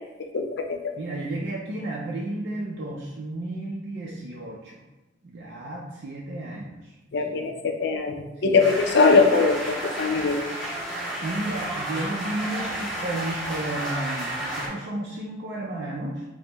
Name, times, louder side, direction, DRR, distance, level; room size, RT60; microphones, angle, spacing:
voice 1, 0.2-0.8 7.1-10.4, left 4 dB, 60° left, 5 dB, 0.4 m, -21 dB
voice 2, 1.0-4.8 5.2-7.5 8.4-8.6 11.2-16.3, right 1 dB, 60° right, -4 dB, 0.4 m, -33 dB
sound 1, 8.6-14.7, right 1 dB, 5° left, 1.3 m, -32 dB
5.1 x 2.1 x 2.9 m, 1.1 s
head